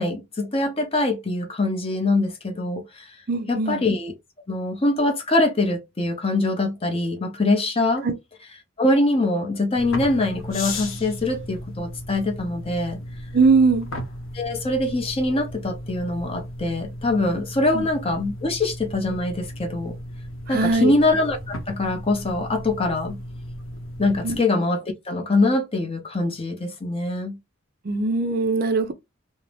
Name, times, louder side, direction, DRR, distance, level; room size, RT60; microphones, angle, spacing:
voice 1, 0.0-3.2 3.5-4.1 4.5-8.1 8.8-13.0 14.3-20.0 20.5-23.2 24.0-27.4, left 2 dB, 30° left, 0.6 m, -23 dB
voice 2, 3.3-3.8 8.0-8.1 13.3-13.9 17.7-17.9 20.5-20.9 24.2-24.4 27.8-28.9, right 4 dB, 45° right, 0.4 m, -20 dB
sound 1, 9.7-24.4, left 1 dB, 75° left, 0.7 m, -35 dB
2.6 x 2.0 x 3.1 m
head